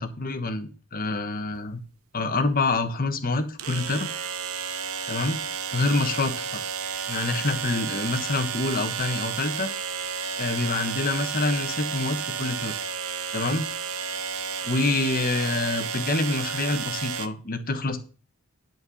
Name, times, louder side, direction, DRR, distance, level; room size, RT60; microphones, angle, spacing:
voice 1, 0.0-1.8 2.1-4.1 5.1-5.4 5.7-6.6 7.1-9.7 10.4-12.7 13.3-13.7 14.6-18.0, left 3 dB, 40° left, 8 dB, 1.3 m, -26 dB
sound 1, 1.5-1.6 3.6-17.3, right 7 dB, 75° right, 0.9 m, -32 dB
11.5 x 4.5 x 7.1 m, 0.38 s
head